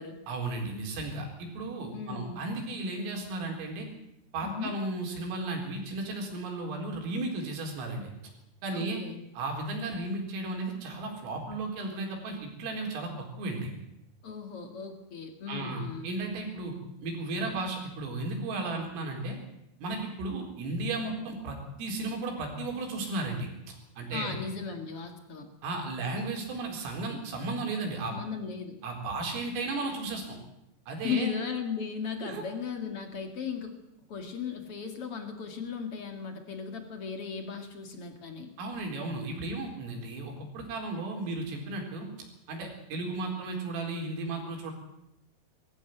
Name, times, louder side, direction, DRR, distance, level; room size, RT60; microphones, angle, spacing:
voice 1, 0.3-3.9 4.3-8.1 8.6-9.0 9.3-13.1 13.4-13.7 15.5-16.7 17.0-19.4 19.8-24.3 25.6-28.2 28.8-30.4 30.9-31.3 32.2-32.4 38.6-42.1 42.5-44.7, right 2 dB, 80° right, 1 dB, 6.7 m, -34 dB
voice 2, 1.9-2.4 4.4-4.7 8.7-9.2 14.2-16.1 24.1-25.5 28.1-28.7 31.0-33.7 34.1-38.5, left 6 dB, 50° left, 5 dB, 1.7 m, -36 dB
21.5 x 15.0 x 9.2 m, 0.84 s
omnidirectional pair, 5.8 m